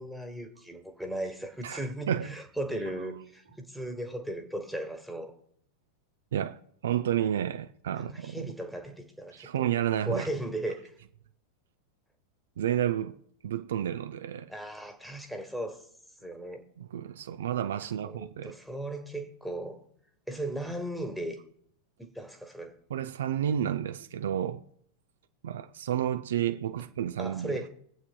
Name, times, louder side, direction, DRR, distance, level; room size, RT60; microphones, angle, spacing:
voice 1, 0.0-5.3 7.9-9.7 10.1-10.9 14.5-15.8 16.2-16.6 18.0-19.8 20.3-21.4 22.0-22.8 27.2-27.7, right 1 dB, ahead, 1.4 m, -37 dB
voice 2, 1.6-2.3 6.3-8.5 9.3-10.3 12.6-13.2 13.4-14.5 16.8-18.5 22.9-24.6 25.4-27.6, right 10 dB, 60° right, 0.5 m, -31 dB
23.0 x 8.2 x 2.2 m
figure-of-eight pair, 90°, 0 cm